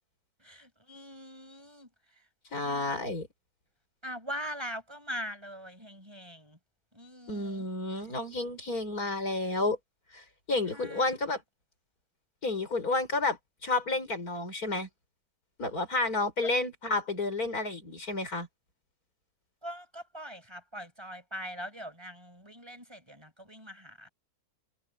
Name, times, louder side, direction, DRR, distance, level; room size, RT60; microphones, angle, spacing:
voice 1, 0.4-1.9 2.6-3.0 4.0-6.6 6.9-7.7 10.7-11.2 19.6-24.1, equal, 15° right, 5.8 m, -42 dB
voice 2, 2.5-3.3 7.3-9.8 10.1-11.4 12.4-14.9 15.6-18.5, left 2 dB, 75° left, 5.7 m, -31 dB
omnidirectional pair, 1.6 m